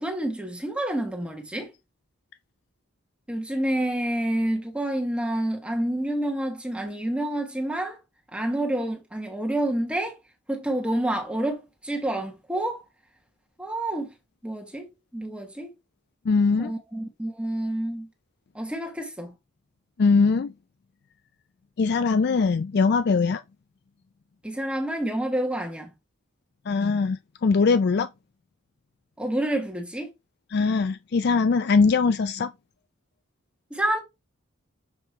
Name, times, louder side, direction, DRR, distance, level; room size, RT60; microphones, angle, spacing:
voice 1, 0.0-1.7 3.3-8.0 8.3-10.2 10.5-12.8 13.6-14.1 14.4-14.9 15.1-15.7 16.6-18.1 18.5-19.4 24.4-25.9 29.2-30.1 33.7-34.0, right 1 dB, 5° right, 1.3 m, -28 dB
voice 2, 16.3-16.7 20.0-20.5 21.8-23.4 26.7-28.1 30.5-32.5, left 4 dB, 55° left, 0.4 m, -21 dB
7.3 x 2.9 x 4.5 m
head